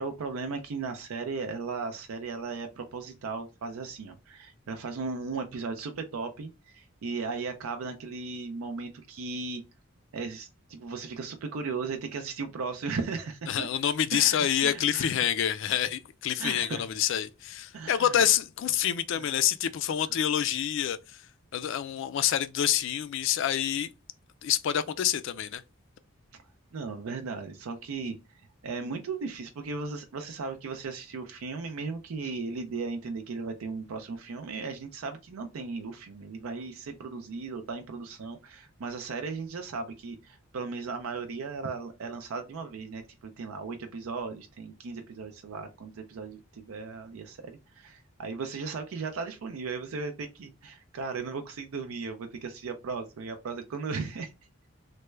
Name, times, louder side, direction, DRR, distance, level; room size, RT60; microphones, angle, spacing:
voice 1, 0.0-9.6 10.1-13.7 14.1-15.3 16.4-16.8 17.7-18.2 19.2-19.3 26.3-26.4 26.7-54.3, right 4 dB, 80° right, 0.4 m, -36 dB
voice 2, 13.5-21.2 21.5-23.9 24.4-25.6, left 10 dB, 60° left, 0.3 m, -27 dB
3.3 x 2.1 x 3.1 m
head